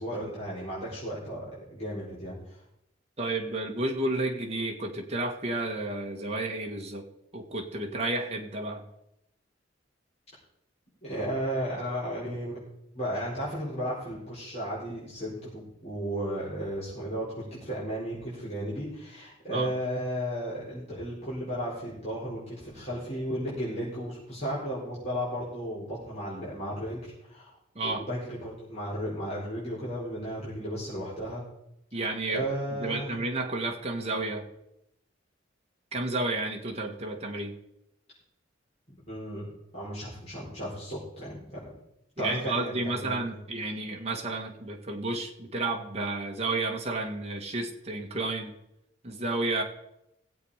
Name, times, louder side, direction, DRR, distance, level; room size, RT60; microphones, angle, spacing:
voice 1, 0.0-2.6 11.0-12.6 12.9-27.5 27.8-31.4 31.9-32.0 32.3-33.2 38.9-39.5 39.7-41.7 42.2-43.4, equal, 35° left, -8 dB, 4.7 m, -34 dB
voice 2, 3.2-7.0 7.3-8.8 19.5-19.7 27.8-28.0 31.9-32.4 32.8-34.5 35.9-37.5 42.2-48.5 49.0-49.6, right 2 dB, 35° right, 1 dB, 1.9 m, -31 dB
18.0 x 8.1 x 5.1 m, 0.82 s
head